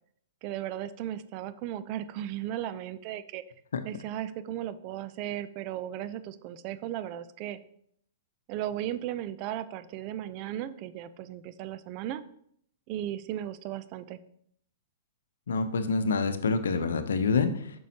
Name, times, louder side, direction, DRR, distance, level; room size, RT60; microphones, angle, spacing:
voice 1, 0.4-3.4 3.8-7.6 8.5-12.2 12.9-14.2, right 12 dB, 45° right, 13 dB, 0.5 m, -36 dB
voice 2, 15.5-17.7, left 4 dB, 80° left, 10 dB, 0.8 m, -27 dB
9.1 x 6.2 x 2.9 m, 0.68 s
hypercardioid pair, 120°, 0 cm